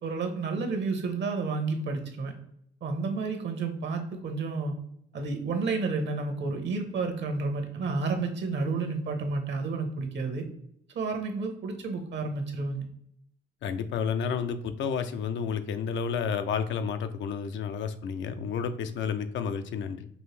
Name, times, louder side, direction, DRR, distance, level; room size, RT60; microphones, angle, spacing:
voice 1, 0.0-2.3 2.8-4.7 5.1-10.5 10.9-12.8, right 4 dB, 65° right, 5 dB, 1.0 m, -31 dB
voice 2, 13.6-20.1, left 6 dB, 70° left, 9 dB, 0.5 m, -31 dB
5.4 x 2.6 x 3.2 m, 0.71 s
cardioid pair, 90°, 20 cm